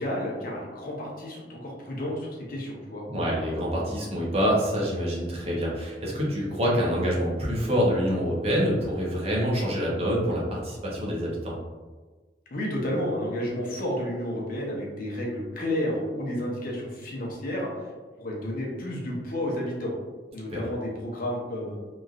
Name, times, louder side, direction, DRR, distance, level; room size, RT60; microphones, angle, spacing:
voice 1, 0.0-3.0 12.5-17.7 18.2-19.9 20.3-21.8, left 1 dB, 55° left, -3 dB, 0.7 m, -31 dB
voice 2, 3.1-11.5 20.5-20.6, equal, 35° right, -4 dB, 0.7 m, -26 dB
3.0 x 2.5 x 2.4 m, 1.3 s
head